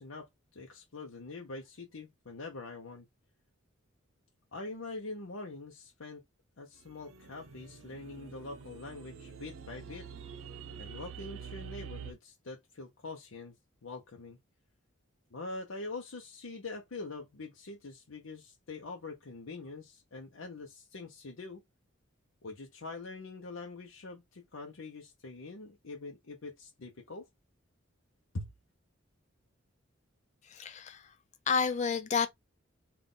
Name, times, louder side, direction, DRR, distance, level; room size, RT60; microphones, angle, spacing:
voice 1, 0.0-3.1 4.5-6.2 6.6-10.1 10.8-13.6 13.8-14.4 15.3-21.6 22.4-27.3 28.3-28.5, left 3 dB, 80° left, 0.7 m, -44 dB
sound 1, 6.8-12.1, right 7 dB, 90° right, 0.6 m, -46 dB
voice 2, 30.4-31.1 31.5-32.3, left 6 dB, 35° left, 0.3 m, -30 dB
3.8 x 2.4 x 3.7 m
head